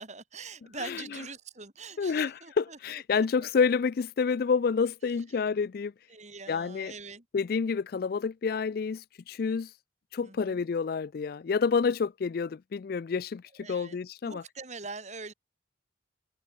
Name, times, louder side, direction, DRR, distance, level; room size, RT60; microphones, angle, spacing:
voice 1, 0.0-3.5 6.1-7.2 10.2-10.6 13.6-14.0 14.2-15.3, right 4 dB, 40° right, 5.5 m, -43 dB
voice 2, 2.0-5.9 6.5-6.9 7.3-9.7 10.1-13.4 13.7-14.4, left 5 dB, 55° left, 0.4 m, -28 dB
open air
head